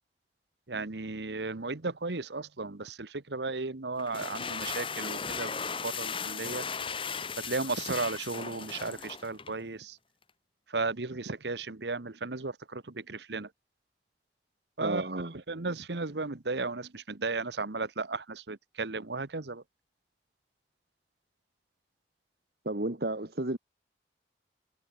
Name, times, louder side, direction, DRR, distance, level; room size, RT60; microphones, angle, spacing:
voice 1, 0.7-5.5 5.8-6.6 7.4-10.0 10.7-13.5 14.8-15.0 15.5-19.6, right 3 dB, 80° right, 1.2 m, -35 dB
sound 1, 4.0-9.6, left 6 dB, 30° left, 2.3 m, -37 dB
voice 2, 14.8-15.4 22.6-23.6, right 2 dB, 60° right, 1.8 m, -32 dB
head